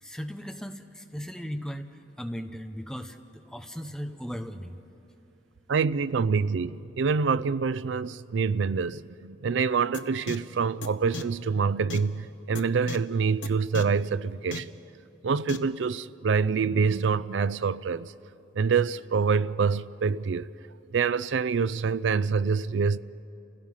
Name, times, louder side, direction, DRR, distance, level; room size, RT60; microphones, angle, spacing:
voice 1, 0.0-4.8, equal, 5° left, 0.7 m, -37 dB
voice 2, 5.7-14.7 15.2-18.1 18.6-20.5 20.9-23.0, right 5 dB, 70° right, 0.4 m, -26 dB
sound 1, 9.9-10.0 10.3-10.4 10.8-10.9 11.1-11.2 11.9-12.0 12.5-12.6 12.9-13.0 13.4-13.5 13.7-13.8 14.5-14.6 15.5-15.6, left 4 dB, 70° left, 0.9 m, -34 dB
29.0 x 16.5 x 5.6 m
head